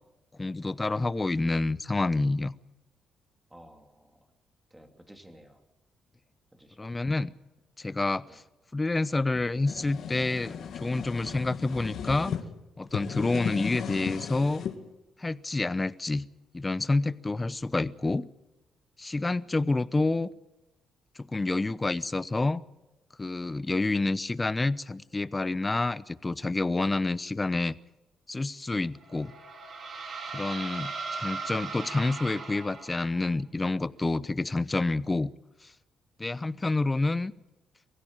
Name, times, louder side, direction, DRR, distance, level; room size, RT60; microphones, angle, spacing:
voice 1, 0.4-2.5 6.8-7.3 7.8-8.4 8.7-12.3 12.8-14.6 15.2-16.3 16.5-18.3 19.0-20.3 21.2-22.6 23.2-27.8 28.3-29.3 30.3-35.3 35.6-35.7 36.2-37.3, left 2 dB, 20° left, 17 dB, 0.8 m, -28 dB
voice 2, 3.5-4.3 4.7-5.6 6.5-7.1 8.3-8.4, right 1 dB, 10° right, 5 dB, 3.1 m, -54 dB
sound 1, 9.3-12.4 12.8-14.8, left 7 dB, 65° left, 2.1 m, -36 dB
sound 2, 29.0-33.3, right 4 dB, 50° right, 3.7 m, -38 dB
23.0 x 15.5 x 9.0 m, 0.98 s
cardioid pair, 90°, 0 cm